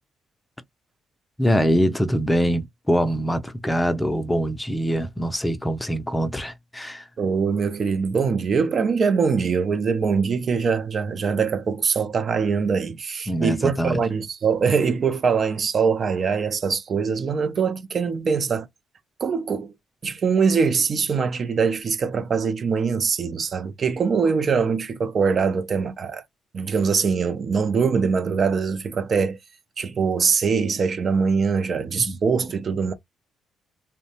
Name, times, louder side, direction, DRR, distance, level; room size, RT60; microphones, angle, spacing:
voice 1, 1.4-7.1 13.3-14.0 32.0-32.2, equal, 10° left, 0.5 m, -23 dB
voice 2, 7.2-18.7 19.2-19.7 20.0-26.2 26.5-29.4 29.8-32.9, right 5 dB, 50° right, 0.4 m, -23 dB
2.6 x 2.1 x 2.8 m
cardioid pair, 90°, 0 cm